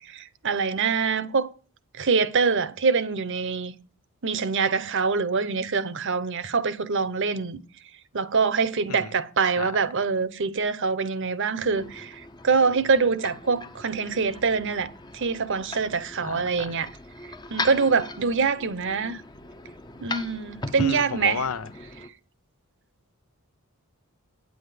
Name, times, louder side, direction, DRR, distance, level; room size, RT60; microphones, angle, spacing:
voice 1, 0.1-1.5 2.0-3.7 4.2-7.6 8.1-16.9 17.5-19.2 20.0-21.4, right 5 dB, 60° right, 0.8 m, -25 dB
sound 1, 11.5-22.1, left 2 dB, 20° left, 0.7 m, -39 dB
voice 2, 16.2-16.7 20.8-21.7, left 6 dB, 85° left, 0.7 m, -32 dB
9.4 x 8.0 x 5.0 m
head